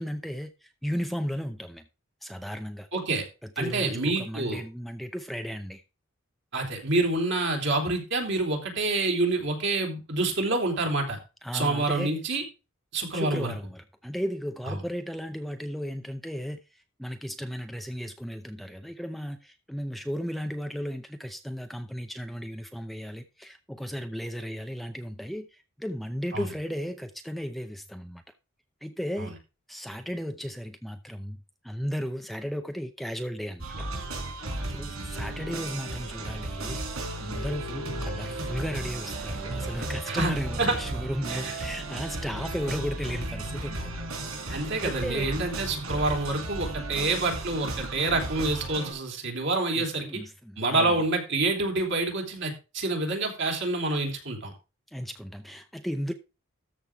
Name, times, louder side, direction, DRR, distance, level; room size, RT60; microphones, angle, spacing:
voice 1, 0.0-1.8 2.2-2.9 3.6-5.8 11.4-12.1 13.1-16.6 17.0-28.2 28.8-29.3 29.7-33.9 34.7-36.8 37.2-43.9 44.5-45.3 49.7-50.9 54.9-56.1, equal, ahead, 0.6 m, -35 dB
voice 2, 2.9-3.2 3.6-4.6 6.5-11.2 11.5-12.4 12.9-13.5 14.7-14.8 26.3-26.5 29.2-29.3 40.1-40.3 40.6-40.8 41.3-41.5 44.5-50.2 50.6-54.5, right 2 dB, 60° right, 3.4 m, -27 dB
sound 1, 33.6-48.9, right 2 dB, 90° right, 3.9 m, -34 dB
13.5 x 6.2 x 3.6 m
head